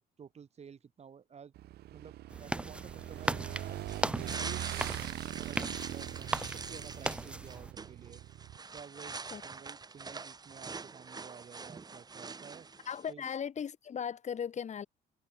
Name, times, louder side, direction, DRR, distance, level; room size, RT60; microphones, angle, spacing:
voice 1, 0.0-1.5 1.9-3.8 4.4-4.6 5.0-8.2 8.7-9.2 9.4-12.7 13.1-13.2, right 7 dB, 40° right, 5.7 m, -52 dB
Motorcycle / Engine, 1.6-8.6, right 14 dB, 75° right, 6.7 m, -42 dB
sound 1, 2.3-7.7, right 1 dB, 5° right, 0.6 m, -38 dB
sound 2, 3.2-13.1, right 4 dB, 25° right, 1.7 m, -44 dB
voice 2, 12.9-14.9, left 7 dB, 45° left, 6.9 m, -37 dB
cardioid pair, 110°, 17 cm